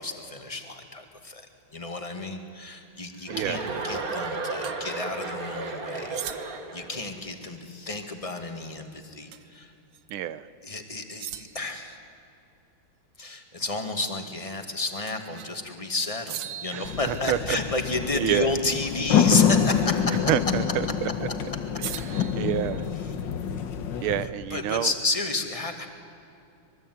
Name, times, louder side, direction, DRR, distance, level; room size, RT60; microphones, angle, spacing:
voice 1, 0.0-1.5 1.7-9.7 10.6-12.0 13.2-20.2 24.5-25.9, left 2 dB, 15° left, 5 dB, 2.0 m, -31 dB
Chuckle chortle, 3.3-7.0, right 3 dB, 45° right, 2.2 m, -33 dB
sound 1, 4.6-4.8 6.1-6.8 9.3-9.6 9.9-10.0 11.2-11.8 15.1-15.6 16.3-17.6 20.0-20.3 21.8-23.2, right 10 dB, 65° right, 1.4 m, -40 dB
voice 2, 10.1-10.5 16.7-17.6 18.2-18.5 20.3-20.6 21.0-21.3 22.0-22.8 24.0-24.9, right 11 dB, 80° right, 15 dB, 1.7 m, -28 dB
sound 2, 16.8-24.3, left 8 dB, 65° left, 1.8 m, -26 dB
25.0 x 22.0 x 9.4 m, 2.6 s
omnidirectional pair, 2.3 m